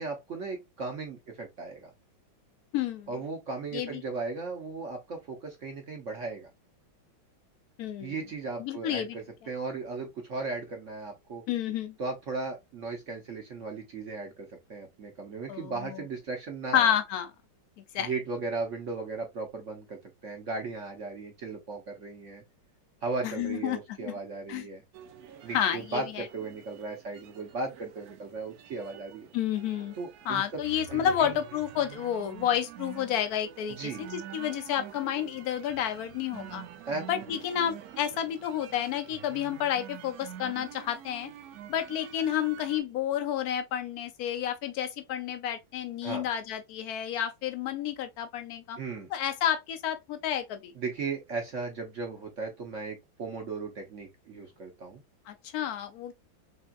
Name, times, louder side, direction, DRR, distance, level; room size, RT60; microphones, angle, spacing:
voice 1, 0.0-1.9 3.1-6.5 8.0-11.4 12.0-16.9 18.0-22.4 23.0-24.8 25.4-29.3 29.9-30.6 30.9-31.4 33.7-34.1 36.9-37.3 46.0-46.3 48.8-49.1 50.7-55.0, right 3 dB, 55° right, 0.8 m, -36 dB
voice 2, 2.7-3.1 3.7-4.0 7.8-8.1 8.6-9.2 11.5-11.9 15.5-15.7 16.7-17.3 17.9-18.1 23.2-23.8 24.5-24.7 25.5-26.2 29.3-29.9 30.3-36.6 37.1-41.3 41.7-48.8 49.1-50.7 55.3-56.1, left 10 dB, 80° left, 0.8 m, -30 dB
sound 1, 24.9-42.8, right 10 dB, 90° right, 0.8 m, -47 dB
4.2 x 3.4 x 2.3 m
omnidirectional pair, 2.2 m